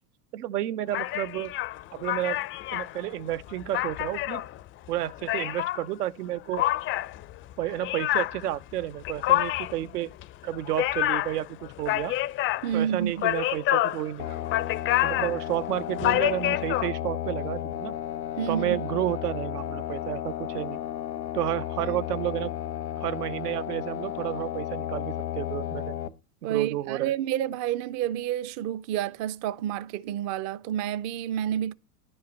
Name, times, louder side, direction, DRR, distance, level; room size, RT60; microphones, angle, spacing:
voice 1, 0.3-1.5 1.9-2.4 2.7-4.4 4.9-6.6 7.6-10.1 10.4-12.1 12.7-14.4 15.0-17.9 18.5-20.8 21.3-22.5 23.0-25.9 26.4-27.1, right 13 dB, 80° right, 0.8 m, -31 dB
sound 1, 0.9-5.9 6.5-16.9, left 15 dB, 30° left, 0.4 m, -28 dB
voice 2, 12.6-13.1 18.4-18.8 21.8-22.0 26.4-31.7, right 10 dB, 35° right, 0.5 m, -29 dB
sound 2, 14.2-26.1, left 11 dB, 90° left, 1.1 m, -33 dB
10.5 x 5.5 x 7.1 m
hypercardioid pair, 100°, 46 cm